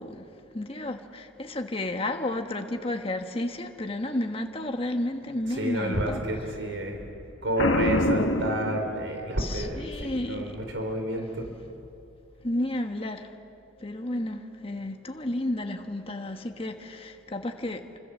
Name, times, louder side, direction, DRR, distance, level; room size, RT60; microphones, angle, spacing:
voice 1, 0.0-6.2 9.4-10.6 12.4-13.3 13.8-18.0, left 1 dB, 30° left, 1.4 m, -32 dB
voice 2, 5.5-7.1 7.4-11.5, right 1 dB, 75° right, 4.2 m, -30 dB
Boom, 7.6-9.4, left 2 dB, 85° left, 1.4 m, -25 dB
29.0 x 25.5 x 7.3 m
head